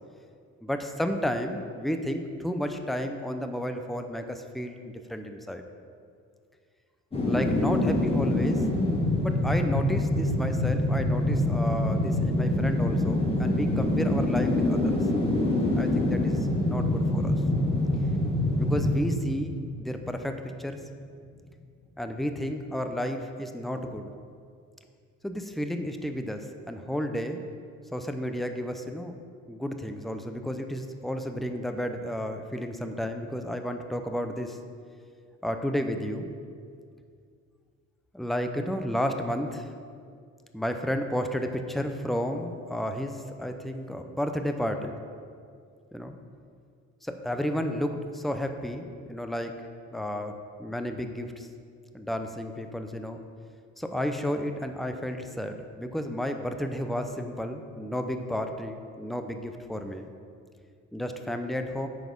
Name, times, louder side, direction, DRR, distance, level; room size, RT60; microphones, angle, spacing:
voice 1, 0.6-5.6 7.3-8.6 9.2-14.9 15.8-17.4 18.6-19.5 19.8-20.8 22.0-24.1 25.2-27.4 27.9-29.1 29.5-34.6 35.4-36.3 38.1-39.7 40.5-44.9 45.9-46.2 47.0-49.5 49.9-50.3 50.6-51.5 51.9-53.2 53.8-60.1 60.9-61.9, equal, ahead, 6 dB, 0.6 m, -32 dB
sound 1, 7.1-20.2 20.5-20.6, left 1 dB, 20° left, 1.8 m, -25 dB
9.3 x 4.1 x 5.3 m, 2.2 s
cardioid pair, 90°, 30 cm